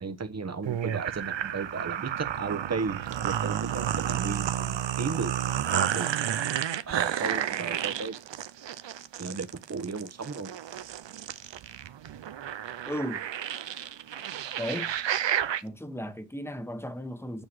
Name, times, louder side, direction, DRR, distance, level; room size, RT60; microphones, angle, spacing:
voice 1, 0.0-5.3 5.7-6.1 6.9-8.1 9.2-10.6, right 4 dB, 35° right, 1.1 m, -34 dB
sound 1, 0.7-15.6, right 10 dB, 75° right, 0.7 m, -31 dB
voice 2, 12.9-13.3 14.6-14.9 15.6-17.4, equal, 5° left, 1.2 m, -35 dB
9.0 x 4.7 x 6.1 m
wide cardioid pair, 75°, 44 cm